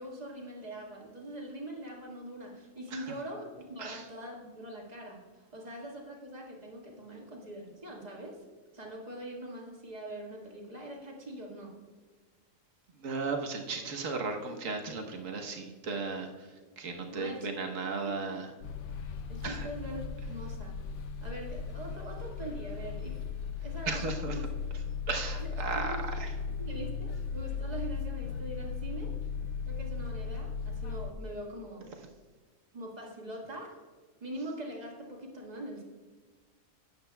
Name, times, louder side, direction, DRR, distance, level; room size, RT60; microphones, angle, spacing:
voice 1, 0.0-8.4 8.7-11.7 17.1-17.5 18.0-18.1 19.3-20.8 21.2-23.2 23.6-24.4 25.4-26.0 26.6-29.2 29.7-31.9 32.7-33.8 34.2-35.8, right 1 dB, 30° right, -1 dB, 1.8 m, -43 dB
voice 2, 13.0-16.5 16.8-18.5 19.4-19.7 23.9-24.4 25.1-26.3, right 4 dB, 80° right, 3 dB, 1.5 m, -35 dB
sound 1, 18.6-31.1, left 5 dB, 70° left, 0.9 m, -37 dB
12.5 x 8.8 x 2.3 m, 1.4 s
omnidirectional pair, 1.3 m